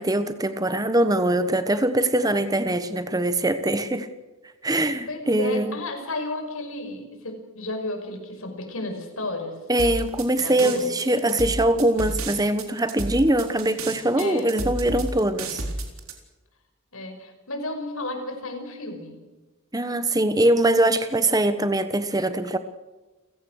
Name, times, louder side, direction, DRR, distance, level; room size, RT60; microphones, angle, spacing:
voice 1, 0.0-4.1 4.6-5.8 9.7-15.6 19.7-22.6, right 1 dB, 15° right, 10 dB, 1.2 m, -22 dB
voice 2, 5.1-9.6 10.4-11.0 14.2-14.5 16.9-19.2, left 2 dB, 70° left, 5 dB, 5.7 m, -32 dB
sound 1, 9.8-16.1, right 2 dB, 70° right, 4.1 m, -31 dB
30.0 x 17.0 x 6.5 m, 1.2 s
head